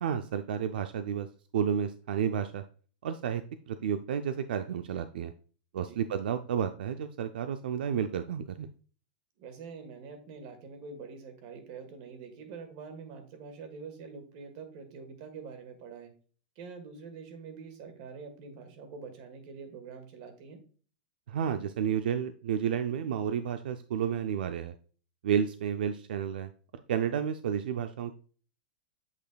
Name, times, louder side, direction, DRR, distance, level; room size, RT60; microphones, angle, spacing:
voice 1, 0.0-1.3 1.5-2.6 3.0-5.3 5.7-8.7 21.3-24.7 25.2-26.5 26.9-28.2, right 8 dB, 75° right, 9 dB, 0.4 m, -31 dB
voice 2, 9.4-16.1 16.5-20.6, right 5 dB, 40° right, 7 dB, 1.4 m, -45 dB
8.1 x 5.1 x 2.3 m, 0.41 s
supercardioid pair, 170°, 5 cm